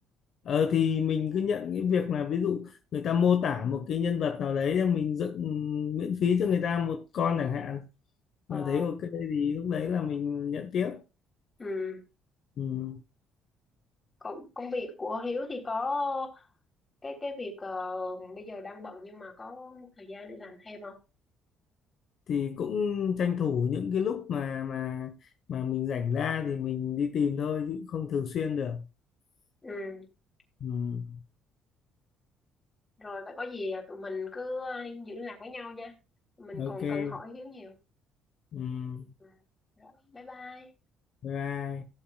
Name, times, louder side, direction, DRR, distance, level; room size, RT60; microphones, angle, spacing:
voice 1, 0.4-7.9 8.5-11.0 12.6-13.0 22.3-28.8 30.6-31.2 36.5-37.2 38.5-39.1 41.2-41.8, left 7 dB, 60° left, 1.2 m, -29 dB
voice 2, 8.5-8.9 11.6-12.0 14.2-16.5 17.0-21.0 29.6-30.1 33.0-35.9 36.4-37.7 39.2-39.3 39.8-40.7, left 3 dB, 25° left, 3.6 m, -37 dB
17.5 x 7.3 x 2.4 m
cardioid pair, 95°, 0 cm